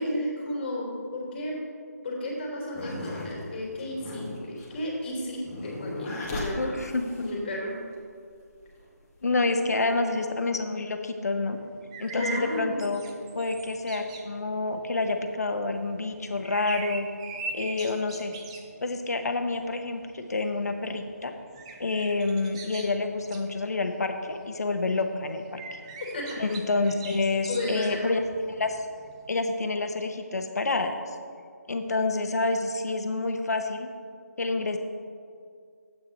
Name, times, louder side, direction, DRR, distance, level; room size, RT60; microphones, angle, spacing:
voice 1, 0.0-1.6 2.0-6.8 7.2-7.7 9.8-10.0 12.1-12.8 26.0-26.4 27.5-28.1, left 1 dB, 35° left, -3 dB, 3.1 m, -33 dB
sound 1, 2.7-7.6 8.4-9.3, left 1 dB, 15° left, 1.9 m, -37 dB
voice 2, 6.6-7.3 9.2-11.6 12.0-13.0 13.3-17.1 17.5-18.3 18.8-21.3 21.8-25.8 26.4-28.8 29.3-31.0 31.7-33.9 34.4-34.8, left 3 dB, 70° left, 6 dB, 1.2 m, -28 dB
sound 2, 11.5-29.4, right 4 dB, 20° right, 0.7 m, -43 dB
12.5 x 8.7 x 4.4 m, 2.2 s
figure-of-eight pair, 160°, 9 cm